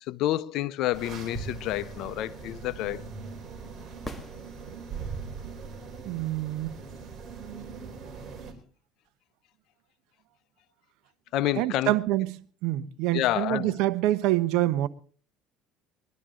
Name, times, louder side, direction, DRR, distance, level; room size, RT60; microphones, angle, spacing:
voice 1, 0.0-3.0 11.3-12.0 13.1-13.8, left 14 dB, 65° left, 0.7 m, -29 dB
sound 1, 0.9-8.5, right 5 dB, 35° right, 3.9 m, -40 dB
sound 2, 4.0-5.2 9.1-9.2, equal, 5° left, 1.8 m, -42 dB
voice 2, 6.0-6.7 11.6-12.4 12.6-14.9, right 15 dB, 75° right, 0.9 m, -26 dB
22.0 x 12.0 x 3.8 m
supercardioid pair, 105°, 0 cm